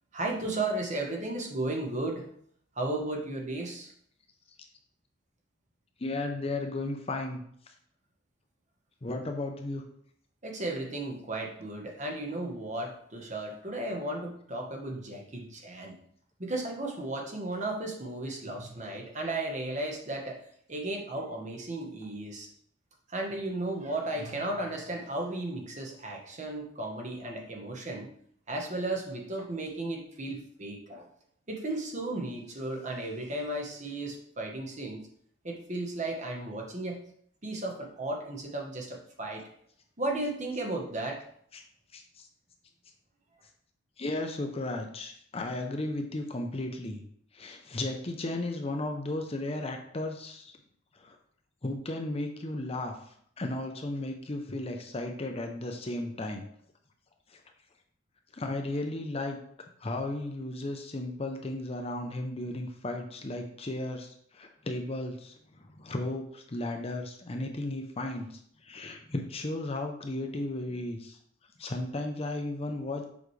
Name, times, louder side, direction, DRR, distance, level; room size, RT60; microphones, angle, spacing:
voice 1, 0.1-2.3 2.7-3.9 10.4-16.0 16.4-20.4 20.7-22.5 23.1-28.1 28.5-31.1 31.5-35.0 35.4-37.0 37.4-39.4 40.0-41.2, right 2 dB, 40° right, 1 dB, 1.2 m, -34 dB
voice 2, 6.0-7.4 9.0-9.8 41.5-41.6 41.9-42.3 44.0-47.0 47.3-50.6 50.9-51.2 51.6-56.5 57.3-57.4 58.3-59.4 59.8-71.2 71.6-73.1, left 2 dB, 30° left, 4 dB, 0.6 m, -35 dB
7.1 x 4.9 x 3.2 m, 0.64 s
head